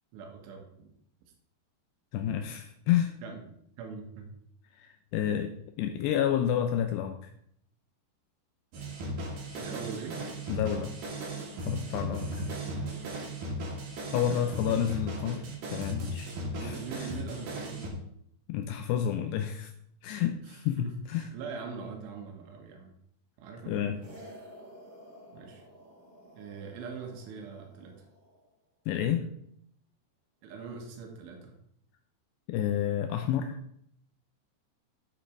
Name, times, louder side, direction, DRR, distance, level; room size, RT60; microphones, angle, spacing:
voice 1, 0.1-0.9 2.3-2.4 3.2-4.3 9.6-10.2 14.3-14.8 16.5-17.9 20.4-22.9 23.4-24.2 25.3-25.6 26.4-28.1 30.4-31.5, right 5 dB, 85° right, 2 dB, 3.9 m, -42 dB
voice 2, 2.1-3.1 4.8-7.2 10.5-10.9 11.6-12.4 14.1-15.5 15.7-16.3 16.6-17.1 18.5-19.7 20.0-21.3 23.7-24.0 28.9-29.3 32.5-33.6, left 10 dB, 85° left, 6 dB, 2.4 m, -30 dB
sound 1, 8.7-17.9, right 1 dB, 55° right, 2.9 m, -37 dB
sound 2, 24.0-28.5, equal, 15° right, 2.4 m, -52 dB
10.0 x 8.3 x 3.5 m, 0.69 s
omnidirectional pair, 5.5 m